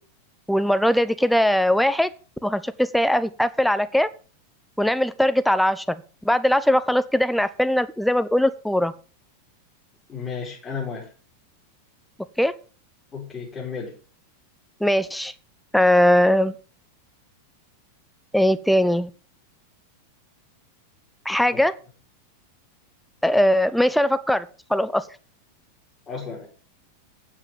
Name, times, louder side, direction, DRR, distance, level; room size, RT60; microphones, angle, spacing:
voice 1, 0.5-2.1 2.4-4.1 4.8-8.9 12.4-12.5 14.8-15.3 15.7-16.5 18.3-19.1 21.2-21.7 23.2-25.0, left 1 dB, ahead, 14 dB, 0.8 m, -20 dB
voice 2, 10.1-11.1 13.1-13.9 21.5-21.6 26.1-26.5, left 5 dB, 20° left, -5 dB, 4.6 m, -33 dB
9.1 x 7.5 x 7.4 m, 0.38 s
figure-of-eight pair, 90°, 0 cm